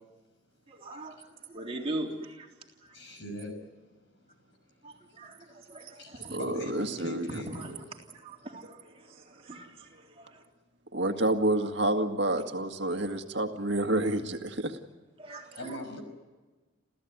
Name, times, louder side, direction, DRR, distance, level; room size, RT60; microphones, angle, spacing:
voice 1, 0.7-3.2 4.8-6.4 7.5-10.5 15.2-15.8, right 2 dB, 30° right, 0 dB, 3.6 m, -41 dB
voice 2, 2.9-3.5 6.0-7.8 15.6-16.0, left 1 dB, 65° left, 6 dB, 5.8 m, -40 dB
voice 3, 6.3-7.4 10.9-14.8, right 1 dB, 60° right, 5 dB, 2.0 m, -29 dB
28.0 x 15.5 x 9.5 m, 1.3 s
head